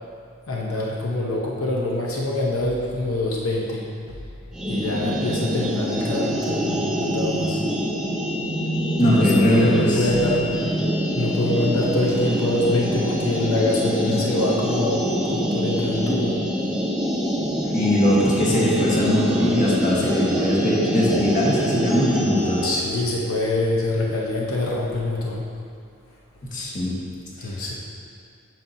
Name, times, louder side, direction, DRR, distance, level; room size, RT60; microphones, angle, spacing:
voice 1, 0.5-4.2 4.7-7.6 9.0-10.8 11.1-16.4 22.6-25.5 27.4-27.7, left 2 dB, 85° left, -3 dB, 0.9 m, -25 dB
sound 1, 4.5-22.8, equal, 5° right, 0.7 m, -25 dB
voice 2, 9.0-10.1 17.7-22.6 26.5-26.9 27.4-27.5, equal, 40° left, -5 dB, 1.3 m, -20 dB
9.2 x 6.0 x 2.7 m, 2.4 s
head